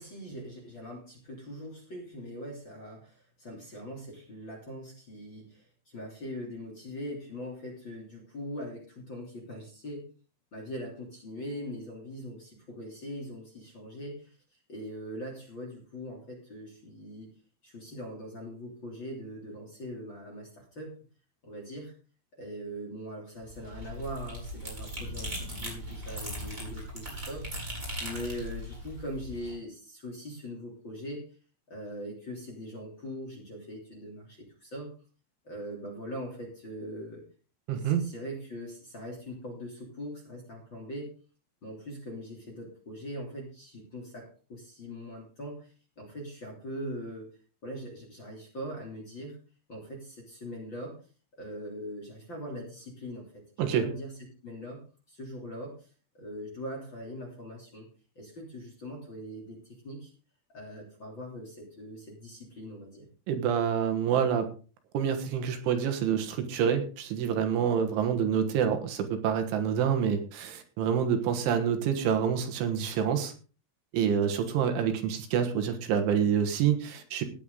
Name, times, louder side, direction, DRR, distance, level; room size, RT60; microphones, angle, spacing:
voice 1, 0.0-10.1 10.5-14.4 14.7-17.3 17.6-20.9 21.4-21.9 22.4-27.6 28.0-31.3 31.7-34.9 35.4-37.2 37.8-41.1 41.6-47.3 47.6-49.4 49.7-51.0 51.4-54.2 54.4-55.9 56.1-57.9 58.1-60.1 60.5-63.1, equal, 30° left, -1 dB, 3.0 m, -41 dB
sound 1, 23.4-29.5, equal, 10° right, 5.1 m, -39 dB
voice 2, 37.7-38.0 53.6-53.9 63.3-64.5 64.9-73.3 73.9-77.2, right 8 dB, 75° right, 7 dB, 3.7 m, -27 dB
16.5 x 10.0 x 3.9 m, 0.36 s
omnidirectional pair, 5.9 m